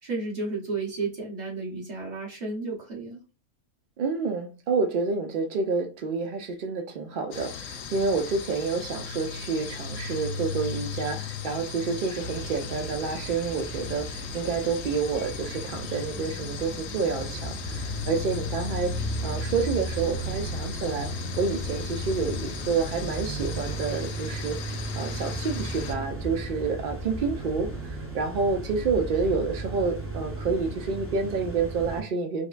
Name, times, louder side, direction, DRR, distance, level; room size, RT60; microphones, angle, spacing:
voice 1, 0.0-3.2, right 3 dB, 35° right, 1.3 m, -32 dB
voice 2, 4.0-24.6 24.9-32.5, right 4 dB, 75° right, 0.4 m, -29 dB
sound 1, 7.3-25.9, left 6 dB, 75° left, 1.0 m, -37 dB
sound 2, 12.2-32.0, right 2 dB, 15° right, 0.6 m, -35 dB
4.9 x 2.1 x 2.4 m
omnidirectional pair, 1.4 m